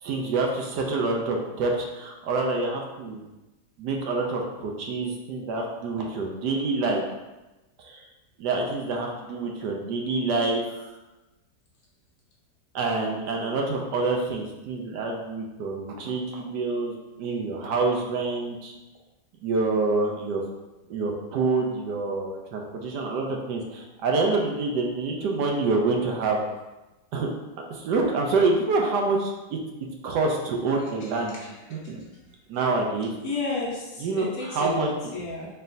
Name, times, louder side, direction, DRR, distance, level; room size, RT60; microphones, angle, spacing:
voice 1, 0.0-3.2 3.8-7.1 7.8-8.0 8.4-10.9 12.7-18.7 19.4-20.4 20.9-26.4 27.1-27.3 27.7-29.6 30.0-31.4 31.7-32.0 32.5-33.1 34.0-35.1, right 3 dB, 75° right, 0 dB, 1.2 m, -27 dB
voice 2, 31.0-31.8 33.2-35.5, left 3 dB, 65° left, -3 dB, 1.0 m, -33 dB
4.3 x 3.3 x 2.6 m, 1.0 s
omnidirectional pair, 1.9 m